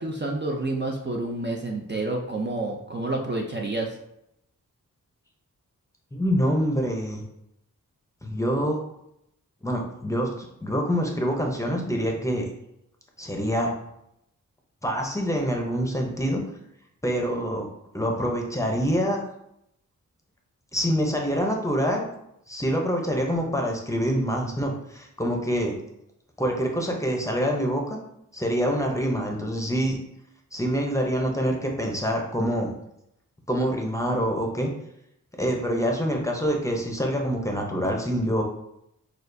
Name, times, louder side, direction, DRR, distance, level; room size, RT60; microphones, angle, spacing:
voice 1, 0.0-4.0, right 2 dB, 35° right, 1 dB, 0.5 m, -29 dB
voice 2, 6.1-7.2 8.2-8.8 9.6-12.5 13.2-13.7 14.8-16.4 17.0-17.7 17.9-19.3 20.7-22.1 22.5-25.7 26.4-28.0 28.3-30.0 30.5-32.7 33.5-34.7 35.4-38.4, equal, 10° left, 1 dB, 0.6 m, -26 dB
6.4 x 2.4 x 2.6 m, 0.78 s
wide cardioid pair, 120°, 33 cm